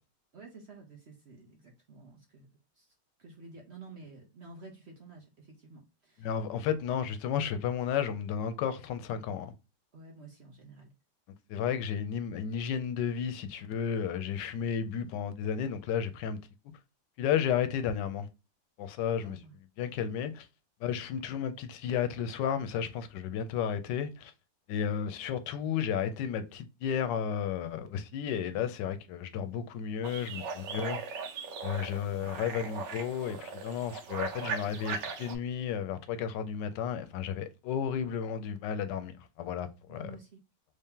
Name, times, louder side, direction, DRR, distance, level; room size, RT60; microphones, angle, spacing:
voice 1, 0.3-2.5 2.8-2.9 3.2-6.3 9.9-10.9 19.2-19.5 32.1-32.3 39.9-40.4, right 3 dB, 55° right, 0.8 m, -51 dB
voice 2, 6.2-9.5 11.5-16.4 16.6-16.8 17.2-18.3 18.8-19.4 19.8-20.5 20.8-24.3 24.7-31.0 31.6-40.1, left 8 dB, 90° left, 1.2 m, -33 dB
sound 1, 30.0-35.4, right 5 dB, 90° right, 1.4 m, -38 dB
3.4 x 2.8 x 3.5 m
omnidirectional pair, 1.9 m